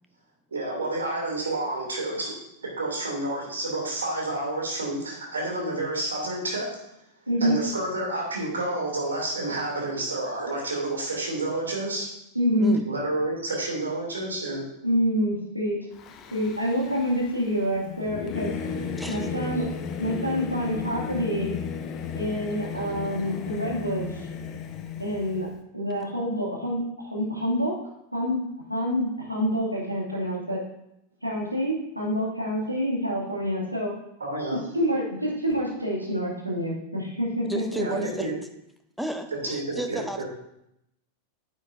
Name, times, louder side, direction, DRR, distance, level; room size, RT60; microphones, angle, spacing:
voice 1, 0.5-2.3 2.8-6.8 7.4-12.1 12.9-14.7 34.2-34.6 37.8-38.3 39.4-40.2, right 2 dB, 70° right, -2 dB, 2.9 m, -29 dB
voice 2, 7.3-7.6 12.3-12.7 14.8-15.8 16.3-18.7 19.1-19.7 20.0-21.5 22.2-24.3 25.0-25.5 25.7-27.8 28.1-28.4 28.7-30.6 31.2-33.9 34.7-38.0, equal, 90° right, -4 dB, 2.4 m, -27 dB
Singing / Musical instrument, 16.0-25.5, left 6 dB, 30° left, 0.8 m, -34 dB
voice 3, 37.4-38.3 39.0-40.2, right 1 dB, ahead, 6 dB, 0.8 m, -32 dB
9.8 x 8.3 x 2.7 m, 0.81 s
figure-of-eight pair, 90°, 0 cm